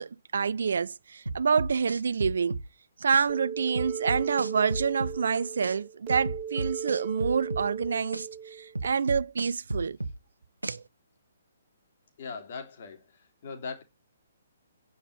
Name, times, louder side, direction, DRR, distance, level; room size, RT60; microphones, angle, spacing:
voice 1, 0.0-2.6 3.0-10.0 10.7-10.8, right 6 dB, 60° right, 0.6 m, -27 dB
sound 1, 1.3-2.7 3.1-3.3 3.8-5.2 5.6-5.8 6.1-7.7 8.1-8.3 8.8-10.2 10.6-10.8, right 2 dB, 85° right, 1.2 m, -33 dB
sound 2, 3.3-8.9, right 8 dB, 25° right, 2.6 m, -37 dB
voice 2, 12.2-13.8, left 5 dB, 45° left, 3.4 m, -40 dB
9.0 x 7.3 x 8.1 m
figure-of-eight pair, 130°, 0 cm